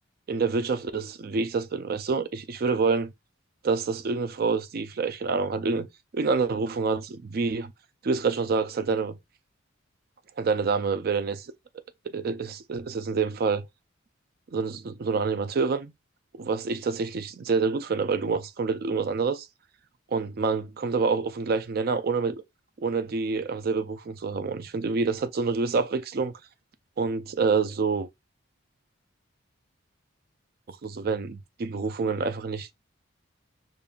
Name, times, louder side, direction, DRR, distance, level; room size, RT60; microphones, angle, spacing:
voice 1, 0.3-3.1 3.6-5.9 6.1-7.7 8.0-9.1 10.4-11.5 12.1-13.7 14.5-15.9 16.4-19.5 20.1-22.4 22.8-26.3 27.0-28.1 30.8-32.7, right 4 dB, 50° right, 0.4 m, -27 dB
5.2 x 2.5 x 2.3 m
head